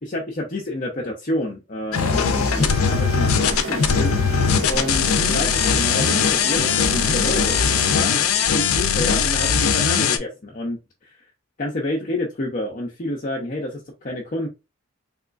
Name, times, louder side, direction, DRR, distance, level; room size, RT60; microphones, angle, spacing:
voice 1, 0.0-4.2 4.7-10.8 11.6-13.8 14.0-14.5, left 1 dB, 40° left, -2 dB, 0.6 m, -29 dB
sound 1, 1.9-10.2, left 6 dB, 85° left, 0.5 m, -20 dB
sound 2, 1.9-8.5, right 2 dB, 65° right, 1.1 m, -31 dB
3.6 x 3.0 x 2.4 m, 0.26 s
head